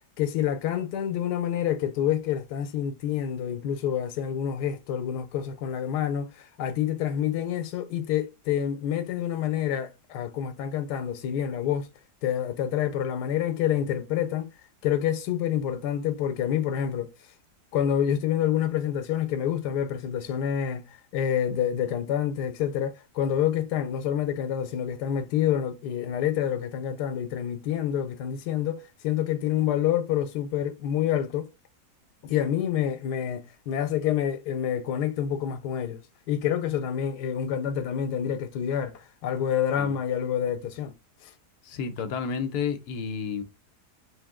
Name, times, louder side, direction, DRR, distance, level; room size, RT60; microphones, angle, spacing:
voice 1, 0.2-11.9 12.2-14.5 14.8-17.1 17.7-31.5 32.2-36.0 36.3-40.9 41.2-41.3, left 9 dB, 90° left, 1.2 m, -27 dB
voice 2, 41.6-43.4, left 6 dB, 75° left, 1.1 m, -31 dB
3.7 x 2.6 x 3.6 m
omnidirectional pair, 1.7 m